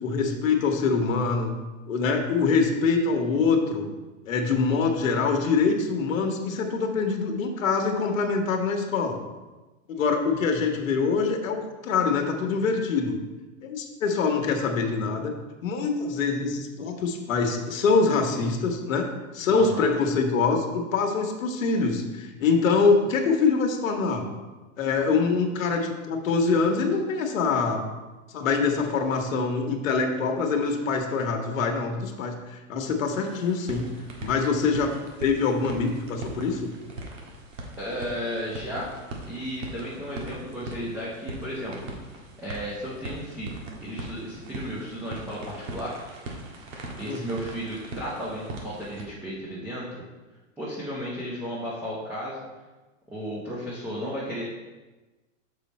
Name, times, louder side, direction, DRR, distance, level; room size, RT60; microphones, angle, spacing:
voice 1, 0.0-1.5 1.9-3.9 4.2-9.2 9.9-13.2 13.6-15.3 15.6-19.1 19.3-24.3 24.8-27.8 28.3-33.9 34.2-34.9 35.2-36.7 47.1-47.2, left 4 dB, 80° left, 3 dB, 1.3 m, -24 dB
voice 2, 19.5-19.8 37.8-38.9 39.2-41.9 42.4-46.0 47.0-50.0 50.6-52.5 53.1-54.4, equal, 5° right, -7 dB, 0.8 m, -34 dB
sound 1, 33.2-49.1, right 1 dB, 70° right, 1.7 m, -40 dB
6.8 x 5.1 x 4.2 m, 1.2 s
supercardioid pair, 155°, 39 cm